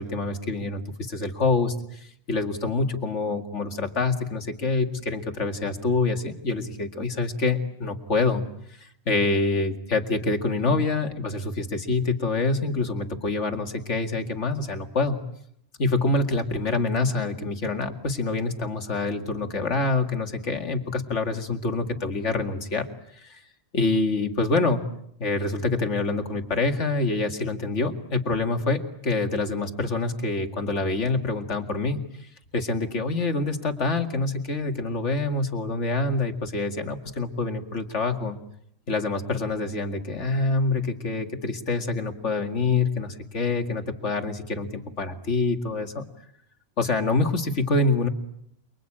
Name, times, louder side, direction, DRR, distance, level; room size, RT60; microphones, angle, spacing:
voice 1, 0.0-8.4 8.8-15.2 15.8-22.9 23.2-23.4 23.7-24.8 25.2-32.0 32.5-38.4 38.9-46.1 46.8-48.1, left 3 dB, 70° left, 6 dB, 2.5 m, -26 dB
29.0 x 23.0 x 8.8 m, 0.73 s
omnidirectional pair, 1.3 m